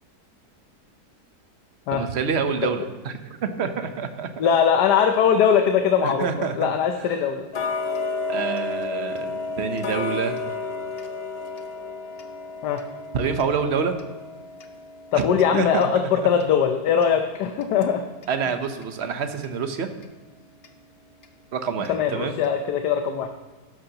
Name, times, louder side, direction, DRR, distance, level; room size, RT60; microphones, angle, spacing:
voice 1, 1.9-4.3 6.0-6.7 8.3-10.4 13.1-13.9 15.1-15.3 15.5-15.9 18.3-19.9 21.5-22.4, right 6 dB, 50° right, 8 dB, 1.0 m, -27 dB
voice 2, 4.4-7.5 12.6-12.8 15.1-18.0 21.9-23.3, left 7 dB, 80° left, 6 dB, 1.3 m, -21 dB
Tick-tock, 7.5-18.4 18.8-18.9 19.4-19.5 20.0-20.1 20.6-20.7 21.2-21.3 21.8-21.9 22.4-22.5, left 4 dB, 50° left, 0.8 m, -33 dB
12.5 x 10.5 x 2.9 m, 1.3 s
omnidirectional pair, 1.8 m